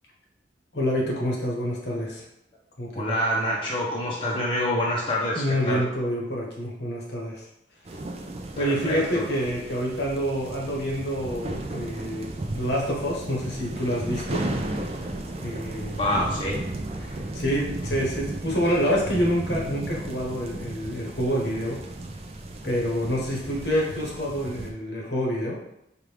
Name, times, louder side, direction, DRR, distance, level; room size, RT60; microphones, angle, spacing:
voice 1, 0.7-2.2 2.8-3.1 5.3-7.4 8.6-14.4 15.4-16.0 17.3-21.8 22.6-25.6, equal, 65° left, -2 dB, 1.0 m, -27 dB
voice 2, 2.9-5.8 8.6-9.3 16.0-16.6, left 1 dB, 30° left, -5 dB, 0.7 m, -26 dB
sound 1, 7.8-24.7, right 1 dB, 35° right, 0.4 m, -34 dB
4.6 x 2.4 x 3.4 m, 0.82 s
head